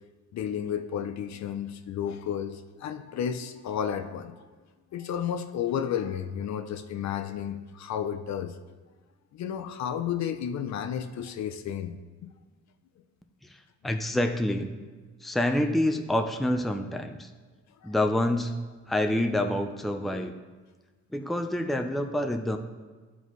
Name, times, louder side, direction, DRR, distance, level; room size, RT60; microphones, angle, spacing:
voice 1, 0.3-4.4 4.9-8.5 9.3-11.9 17.8-17.9, left 8 dB, 65° left, 8 dB, 0.6 m, -32 dB
voice 2, 13.4-14.7 15.2-17.3 17.8-18.5 18.9-20.3 21.1-22.6, left 1 dB, ahead, 5 dB, 0.5 m, -27 dB
12.0 x 4.1 x 3.1 m, 1.4 s
cardioid pair, 90°, 30 cm